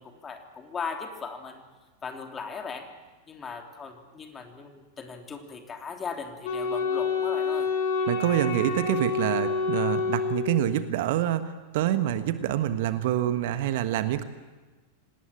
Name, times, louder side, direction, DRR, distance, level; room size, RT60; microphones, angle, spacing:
voice 1, 0.0-1.6 2.0-2.9 3.3-7.7, left 5 dB, 20° left, 4 dB, 3.3 m, -38 dB
Wind instrument woodwind instrument, 6.4-10.9, left 4 dB, 50° left, 4.5 m, -28 dB
voice 2, 8.1-14.2, right 12 dB, 50° right, 11 dB, 1.4 m, -26 dB
27.0 x 19.0 x 8.7 m, 1.2 s
figure-of-eight pair, 90°, 0 cm